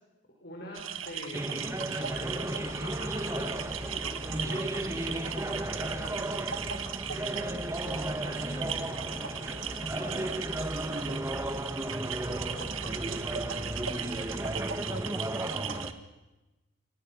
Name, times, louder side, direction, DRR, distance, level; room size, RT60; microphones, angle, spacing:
voice 1, 0.4-4.7 5.0-6.4 7.0-10.4 12.5-12.7, left 1 dB, 55° left, -1 dB, 5.4 m, -45 dB
sound 1, 0.7-15.9, right 8 dB, 90° right, 1.7 m, -38 dB
sound 2, 1.3-15.9, right 1 dB, 15° right, 1.3 m, -34 dB
sound 3, 2.1-14.8, equal, 5° left, 2.0 m, -46 dB
voice 2, 11.3-12.0 12.6-13.8 14.0-14.3 15.3-15.5, right 2 dB, 45° right, 8 dB, 1.2 m, -50 dB
29.0 x 23.5 x 6.2 m, 1.1 s
head